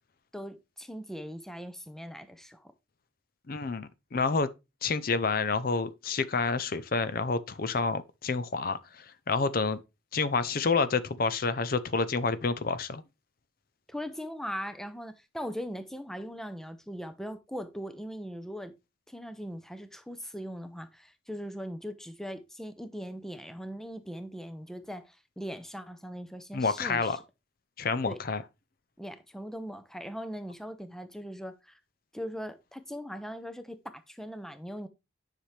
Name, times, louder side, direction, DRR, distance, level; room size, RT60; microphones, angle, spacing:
voice 1, 0.3-2.7 13.9-18.7 19.1-27.2 28.1-28.2 29.0-31.8 32.1-34.9, equal, ahead, 0.6 m, -40 dB
voice 2, 3.5-4.5 4.8-9.8 10.1-13.0 26.5-27.2 27.8-28.4, left 4 dB, 50° left, 0.6 m, -29 dB
10.0 x 5.9 x 3.3 m
head